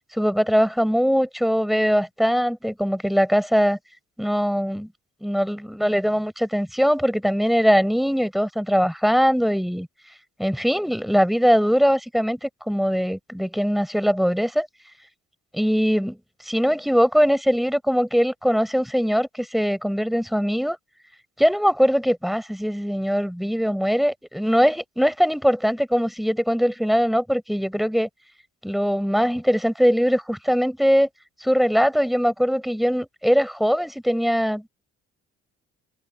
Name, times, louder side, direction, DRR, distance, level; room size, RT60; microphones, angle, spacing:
voice 1, 0.1-3.8 4.2-4.9 5.2-9.9 10.4-14.7 15.5-16.2 16.4-20.8 21.4-28.1 28.6-31.1 31.4-34.7, equal, ahead, 5.2 m, -21 dB
cardioid pair, 90°, 30 cm